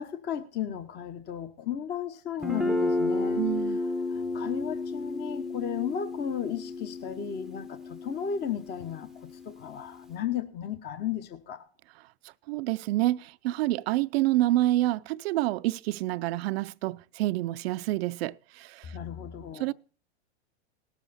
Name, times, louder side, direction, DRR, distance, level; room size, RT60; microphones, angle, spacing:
voice 1, 0.0-11.7 18.8-19.7, left 8 dB, 30° left, 0.9 m, -35 dB
Guitar, 2.4-10.1, left 2 dB, ahead, 0.6 m, -32 dB
voice 2, 3.4-3.8 12.5-19.0 19.6-19.7, right 16 dB, 65° right, 0.5 m, -28 dB
18.0 x 7.3 x 4.1 m
hypercardioid pair, 115°, 33 cm